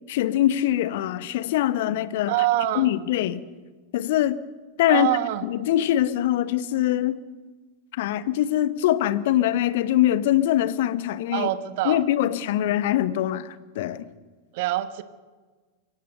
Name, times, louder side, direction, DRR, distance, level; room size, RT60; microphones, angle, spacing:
voice 1, 0.1-2.3 2.7-3.4 3.9-4.4 4.8-5.1 5.4-7.2 7.9-11.5 11.8-14.0, left 13 dB, 55° left, 16 dB, 1.0 m, -23 dB
voice 2, 2.3-2.9 4.9-5.4 11.3-12.0 14.5-15.0, right 14 dB, 50° right, 14 dB, 1.0 m, -25 dB
23.0 x 17.0 x 7.8 m, 1.4 s
figure-of-eight pair, 90°, 0 cm